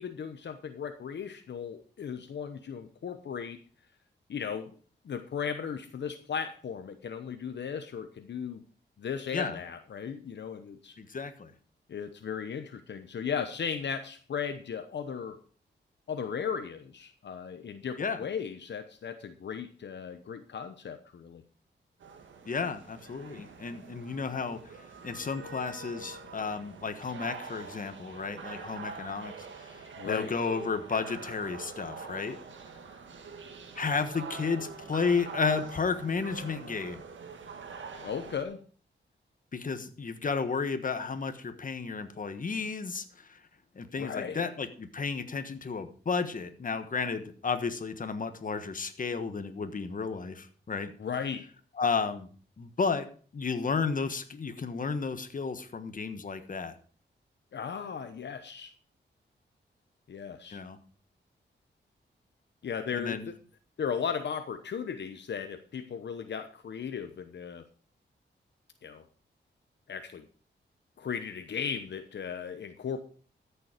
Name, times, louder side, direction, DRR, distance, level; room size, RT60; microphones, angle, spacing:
voice 1, 0.0-3.6 4.3-4.7 5.0-8.6 9.0-10.9 11.9-15.4 16.1-21.4 30.0-30.4 38.0-38.6 44.0-44.5 51.0-51.5 57.5-58.7 60.1-60.6 62.6-63.4 63.8-67.6 68.8-69.0 69.9-70.2 71.0-73.0, left 7 dB, 70° left, 8 dB, 0.9 m, -36 dB
voice 2, 11.0-11.5 18.0-18.2 22.4-24.6 25.0-32.4 33.8-37.0 39.5-43.4 43.7-50.9 51.8-52.3 52.6-53.1 53.3-56.7 60.5-60.8 62.9-63.3, left 5 dB, 45° left, 9 dB, 1.3 m, -32 dB
sound 1, 22.0-38.4, right 5 dB, 85° right, 1.8 m, -45 dB
13.5 x 7.0 x 5.1 m, 0.41 s
wide cardioid pair, 95°, 19 cm